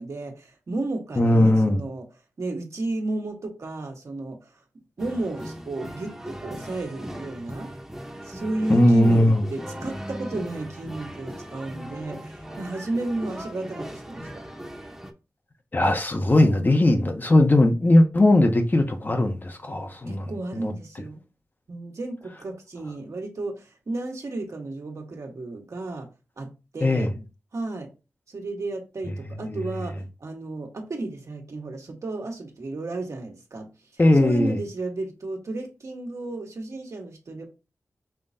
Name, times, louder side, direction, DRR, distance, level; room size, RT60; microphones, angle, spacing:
voice 1, 0.0-2.0 2.4-4.5 5.0-7.7 8.2-14.5 20.1-21.2 21.7-26.1 26.4-27.1 27.5-27.9 28.3-37.5, right 2 dB, 65° right, 1.5 m, -33 dB
voice 2, 1.2-1.8 8.7-9.4 15.7-20.7 26.8-27.1 29.4-29.6 34.0-34.6, left 1 dB, 35° left, 0.9 m, -19 dB
sound 1, 5.0-15.1, equal, 10° right, 1.0 m, -38 dB
5.6 x 3.1 x 2.7 m
cardioid pair, 60°, 6 cm